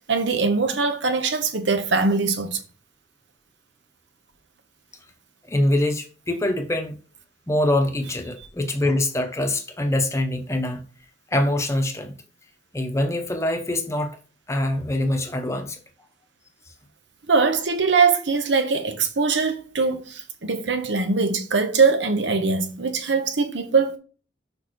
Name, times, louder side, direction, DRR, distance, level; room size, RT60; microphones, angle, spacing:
voice 1, 0.1-2.6 17.3-24.0, right 4 dB, 90° right, 1.0 m, -22 dB
voice 2, 5.4-7.0 7.5-10.9 11.3-12.1 12.7-14.2 14.5-15.8, left 1 dB, 15° left, 0.8 m, -24 dB
6.3 x 5.4 x 3.1 m
head